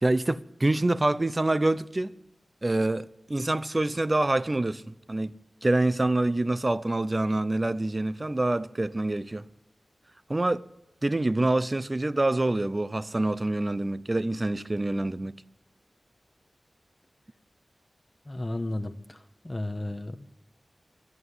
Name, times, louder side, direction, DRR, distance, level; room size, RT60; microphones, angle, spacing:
voice 1, 0.0-2.2 2.6-9.5 10.3-10.6 11.0-15.4, right 2 dB, 30° right, 0.5 m, -26 dB
voice 2, 18.3-20.4, left 1 dB, 20° left, 0.8 m, -34 dB
13.0 x 11.0 x 9.7 m
wide cardioid pair, 80°, 0 cm